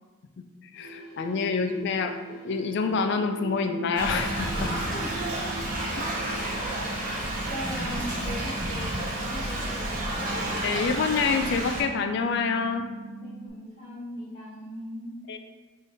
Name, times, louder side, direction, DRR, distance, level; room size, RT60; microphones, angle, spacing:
sound 1, 0.7-6.4, right 3 dB, 70° left, 1.1 m, -42 dB
voice 1, 0.7-4.7 6.2-6.4 10.6-12.8 15.3-15.4, left 5 dB, 55° left, 6 dB, 0.3 m, -27 dB
sound 2, 3.5-13.5, right 3 dB, 65° right, 0.6 m, -41 dB
Thunder / Rain, 4.0-11.8, right 1 dB, 40° right, 0.8 m, -31 dB
voice 2, 4.6-5.6 6.1-6.3 6.6-6.7 7.4-10.2 13.2-15.1, equal, 30° left, -9 dB, 1.3 m, -38 dB
4.9 x 2.7 x 2.7 m, 1.3 s
head